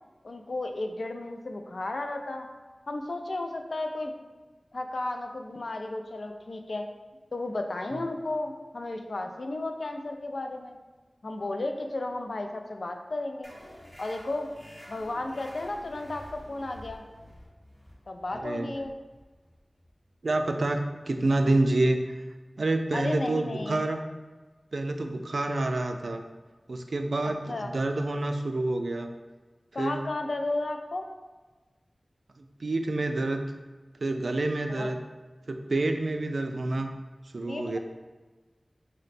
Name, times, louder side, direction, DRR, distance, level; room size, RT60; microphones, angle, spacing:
voice 1, 0.2-2.5 2.9-4.1 4.7-6.8 7.3-10.8 11.2-13.5 14.0-14.5 14.9-17.0 18.1-18.9 22.9-23.8 27.5-27.7 29.7-31.0 34.7-34.9 37.5-37.8, left 2 dB, 75° left, 4 dB, 0.4 m, -33 dB
sound 1, 13.4-20.6, equal, 50° left, 1.2 m, -49 dB
voice 2, 18.3-18.7 20.2-22.1 22.6-24.0 24.7-26.2 26.7-29.1 29.8-30.0 32.4-33.4 34.0-35.0 35.5-36.9 37.3-37.8, right 2 dB, 80° right, 6 dB, 0.3 m, -28 dB
5.0 x 2.2 x 4.1 m, 1.3 s
wide cardioid pair, 55°, 0 cm